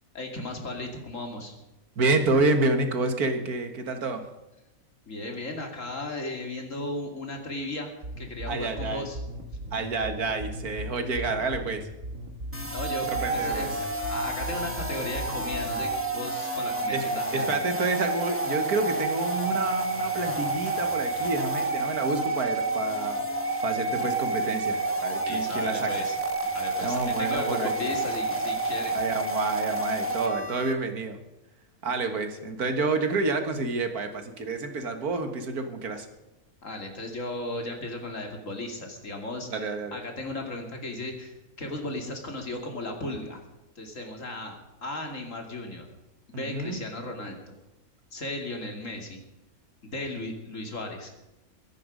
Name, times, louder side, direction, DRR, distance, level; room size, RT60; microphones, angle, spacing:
voice 1, 0.1-1.6 5.1-7.9 8.2-9.2 12.7-17.5 25.2-26.2 26.5-28.9 36.6-43.4 43.8-45.9 46.3-47.6 48.1-49.2 49.8-51.1, left 2 dB, 60° left, 3 dB, 3.0 m, -36 dB
voice 2, 2.0-4.3 8.5-9.1 9.7-11.9 13.1-13.7 16.9-17.0 17.3-23.2 23.6-25.9 26.8-27.9 28.9-31.2 31.8-36.1 39.5-40.0 46.3-46.8, right 3 dB, 90° right, 7 dB, 2.2 m, -29 dB
sound 1, 8.0-16.0, right 1 dB, 60° right, 2.4 m, -37 dB
sound 2, 12.5-30.7, right 2 dB, 10° right, 1.6 m, -29 dB
22.5 x 10.5 x 5.2 m, 0.97 s
omnidirectional pair, 1.5 m